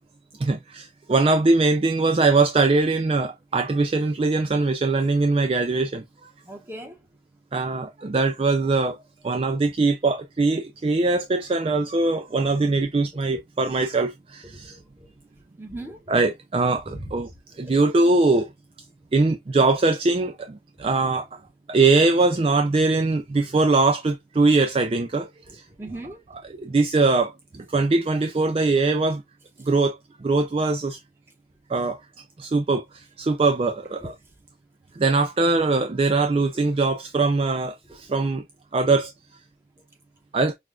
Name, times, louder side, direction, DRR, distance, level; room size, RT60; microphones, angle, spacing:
voice 1, 0.4-6.0 7.5-9.0 9.2-14.8 16.1-17.3 17.6-18.5 19.1-21.3 21.7-25.6 26.5-29.2 29.6-31.0 31.7-32.0 32.4-34.1 34.9-38.4 38.7-39.1 40.3-40.5, right 3 dB, 30° right, 0.4 m, -22 dB
voice 2, 6.4-7.0 14.5-15.1 15.6-16.0 16.9-17.1 17.6-17.8 20.8-20.9 25.5-26.2 34.0-34.1, right 1 dB, 15° right, 1.1 m, -38 dB
6.1 x 2.4 x 2.3 m
head